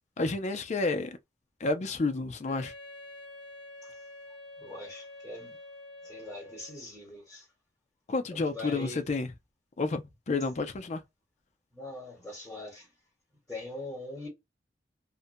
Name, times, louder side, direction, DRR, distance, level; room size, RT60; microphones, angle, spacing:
voice 1, 0.2-1.1 1.6-2.7 8.1-9.3 9.8-11.0, left 3 dB, 40° left, 0.4 m, -30 dB
Wind instrument woodwind instrument, 2.5-6.9, left 2 dB, 70° left, 0.9 m, -47 dB
voice 2, 4.6-5.6 6.0-7.5 8.3-9.0 11.7-12.9 13.5-14.3, left 2 dB, 5° left, 1.4 m, -42 dB
2.6 x 2.1 x 2.5 m
head